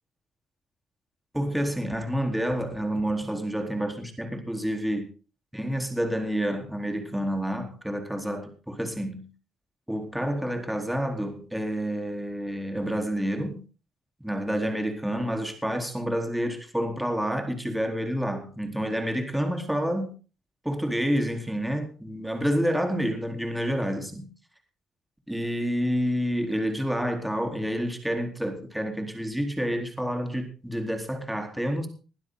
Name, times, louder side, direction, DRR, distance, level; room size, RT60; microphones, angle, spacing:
voice 1, 1.3-5.1 5.5-9.3 9.9-13.6 14.2-20.1 20.6-24.3 25.3-31.9, equal, 5° right, 5 dB, 4.0 m, -29 dB
21.0 x 12.0 x 4.0 m, 0.35 s
cardioid pair, 90°, 0 cm